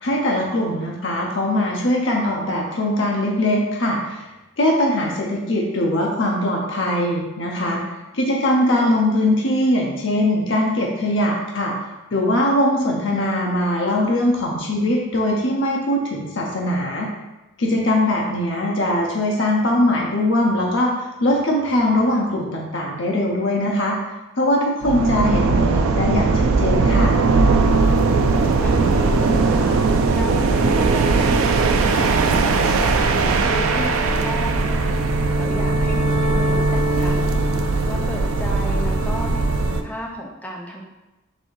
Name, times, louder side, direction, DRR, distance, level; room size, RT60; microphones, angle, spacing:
voice 1, 0.0-4.3 4.6-7.8 8.1-11.7 12.1-17.1 17.6-23.9 24.4-27.1, left 1 dB, 60° left, -1 dB, 0.6 m, -21 dB
voice 2, 7.6-7.9 18.0-18.4 28.3-29.8 30.1-35.0 35.4-37.4 37.9-40.8, equal, 5° left, -2 dB, 0.5 m, -33 dB
sound 1, 24.8-39.8, right 3 dB, 80° right, 0.4 m, -19 dB
4.1 x 2.6 x 4.6 m, 1.0 s
head